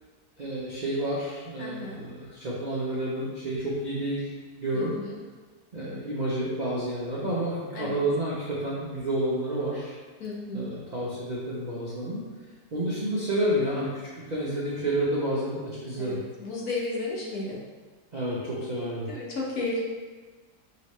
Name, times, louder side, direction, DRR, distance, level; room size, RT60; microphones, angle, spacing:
voice 1, 0.4-4.3 4.6-4.9 5.7-9.9 10.5-12.2 12.7-14.0 14.3-16.2 18.1-19.1, right 1 dB, 60° right, -7 dB, 0.4 m, -29 dB
voice 2, 1.6-2.0 4.7-5.1 7.7-7.9 10.2-10.7 16.0-16.1 16.4-17.5 19.1-19.8, left 2 dB, 65° left, -4 dB, 1.3 m, -33 dB
4.9 x 2.9 x 3.1 m, 1.4 s
omnidirectional pair, 1.7 m